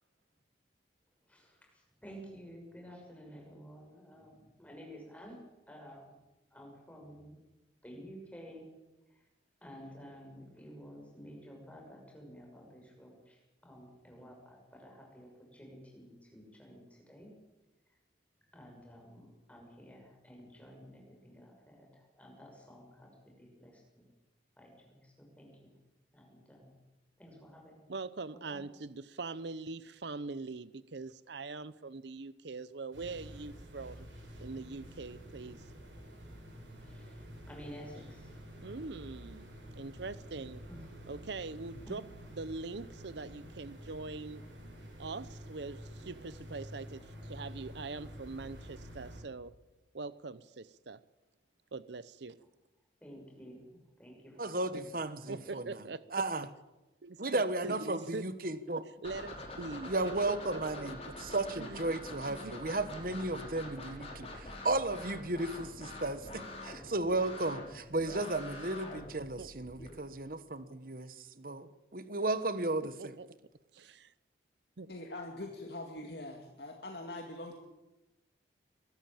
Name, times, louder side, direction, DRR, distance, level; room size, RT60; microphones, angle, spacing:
voice 1, 1.2-6.1 6.5-7.4 7.8-8.7 9.1-9.3 9.6-17.3 17.9-18.0 18.5-24.0 24.6-25.7 26.1-26.8 27.2-27.9 28.3-28.6 36.8-38.3 40.7-40.9 41.8-41.9 53.0-54.9 55.2-55.5 57.6-57.8, equal, 5° left, 0 dB, 6.1 m, -52 dB
voice 2, 27.9-34.1 34.4-35.6 38.6-39.5 39.7-40.6 41.1-42.0 42.4-44.4 45.0-49.5 49.9-51.0 51.7-52.4 55.3-56.2 57.0-58.2 59.0-59.9 60.2-60.9 61.6-61.8 62.3-62.6 69.4-69.5 72.8-73.3 73.7-74.1 74.8-74.9, right 3 dB, 70° right, 17 dB, 0.7 m, -42 dB
sound 1, 32.9-49.2, equal, 90° right, 7.3 m, -49 dB
voice 3, 54.4-55.8 56.1-56.4 57.2-58.8 59.8-71.7 71.9-73.1, right 2 dB, 50° right, 13 dB, 1.3 m, -34 dB
sound 2, 59.0-69.9, left 2 dB, 35° left, 4.9 m, -45 dB
voice 4, 74.9-77.6, left 2 dB, 60° left, 2 dB, 2.3 m, -43 dB
22.5 x 13.0 x 8.9 m, 1.0 s
head